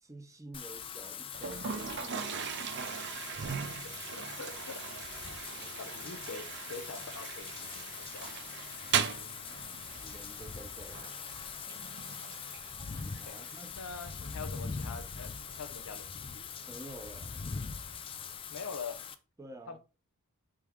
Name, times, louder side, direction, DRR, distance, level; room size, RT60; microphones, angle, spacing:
voice 1, 0.0-2.5 5.5-5.7 9.5-11.1 13.2-13.8 16.7-17.4 19.4-19.8, right 2 dB, 15° right, 0.7 m, -50 dB
Wind / Rain, 0.5-19.1, left 6 dB, 25° left, 0.3 m, -43 dB
Toilet flush, 1.3-18.4, right 7 dB, 50° right, 0.5 m, -41 dB
voice 2, 3.8-4.9 5.5-8.4 9.7-9.9 13.2-13.5 13.8-16.4 18.5-19.1 19.7-19.8, left 4 dB, 70° left, 0.6 m, -45 dB
4.7 x 3.1 x 3.5 m
head